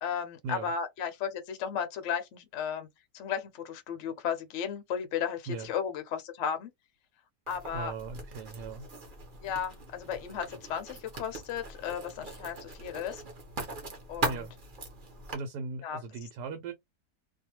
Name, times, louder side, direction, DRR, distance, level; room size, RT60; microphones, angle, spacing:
voice 1, 0.0-2.9 3.1-6.7 7.5-7.9 9.4-13.2 14.1-14.5 15.8-16.0, left 7 dB, 60° left, 0.8 m, -34 dB
Writing, 7.5-15.3, right 3 dB, 40° right, 0.8 m, -40 dB
voice 2, 7.7-8.9 14.3-14.5 15.3-16.7, right 4 dB, 75° right, 1.2 m, -38 dB
2.6 x 2.3 x 2.8 m
omnidirectional pair, 1.8 m